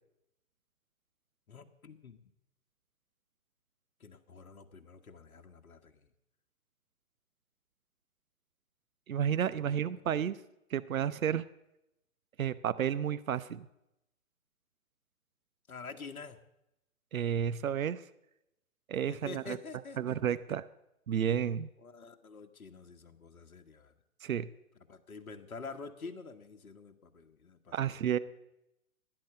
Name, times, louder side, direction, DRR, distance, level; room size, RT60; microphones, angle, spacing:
voice 1, 1.5-2.2 4.0-6.1 9.2-9.9 15.7-16.4 19.0-20.6 21.8-23.9 24.9-28.2, left 4 dB, 75° left, 6 dB, 1.5 m, -48 dB
voice 2, 9.1-10.4 10.7-11.4 12.4-13.7 17.1-18.0 18.9-19.6 20.0-20.6 21.1-21.7 24.2-24.5 27.7-28.2, right 9 dB, 70° right, 14 dB, 0.9 m, -31 dB
16.5 x 10.0 x 7.8 m, 0.86 s
figure-of-eight pair, 125°, 43 cm